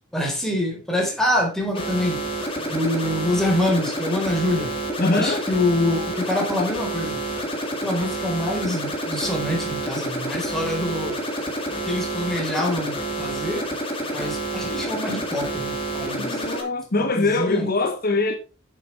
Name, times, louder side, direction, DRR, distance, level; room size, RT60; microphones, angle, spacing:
voice 1, 0.1-2.2 2.7-4.8 5.1-7.3 7.8-11.2 11.9-13.7 14.1-16.5 17.0-17.7, left 1 dB, ahead, 4.3 m, -25 dB
sound 1, 1.7-16.6, right 1 dB, 25° left, 2.7 m, -29 dB
voice 2, 5.0-5.4 16.2-18.4, left 3 dB, 45° left, 1.0 m, -23 dB
9.7 x 7.8 x 4.5 m
head